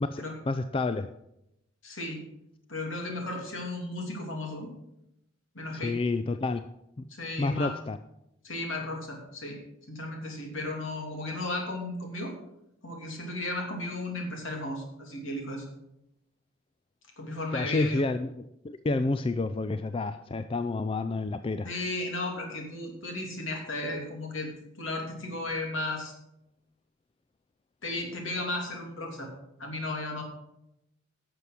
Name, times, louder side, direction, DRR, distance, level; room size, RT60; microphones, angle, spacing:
voice 1, 0.0-1.1 5.8-6.6 7.0-7.1 7.4-8.0 17.5-21.7, left 3 dB, 25° left, 10 dB, 0.3 m, -29 dB
voice 2, 1.8-2.3 2.7-4.7 5.5-6.0 7.1-7.7 8.4-9.6 9.9-12.3 12.8-15.7 17.2-18.0 21.6-24.5 24.8-26.1 27.8-29.3 29.6-30.2, left 2 dB, 70° left, 1 dB, 2.8 m, -34 dB
11.5 x 6.9 x 6.1 m, 0.84 s
head